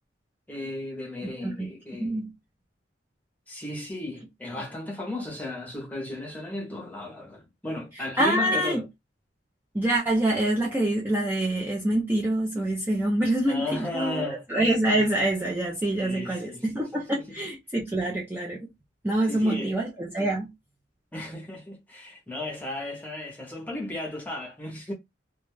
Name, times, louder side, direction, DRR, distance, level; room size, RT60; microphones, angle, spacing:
voice 1, 0.5-2.2 3.5-8.9 13.5-14.5 16.0-17.4 19.3-19.8 21.1-24.9, left 2 dB, 10° left, 0.8 m, -35 dB
voice 2, 2.0-2.3 8.2-8.8 9.7-18.6 19.0-20.5, right 1 dB, 10° right, 0.5 m, -26 dB
2.4 x 2.3 x 3.1 m
head